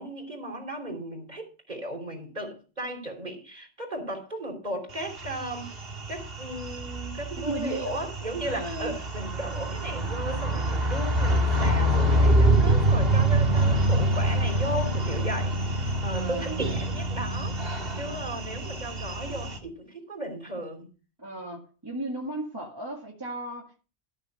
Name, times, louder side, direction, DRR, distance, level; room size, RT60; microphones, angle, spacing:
voice 1, 0.0-5.7 6.1-20.9, right 1 dB, 40° right, 3.5 m, -36 dB
sound 1, 5.0-19.6, right 1 dB, 65° right, 2.1 m, -26 dB
voice 2, 7.5-8.0 8.4-9.0 16.1-16.6 21.2-23.8, right 1 dB, 20° right, 1.9 m, -35 dB
13.5 x 6.6 x 5.4 m
omnidirectional pair, 1.1 m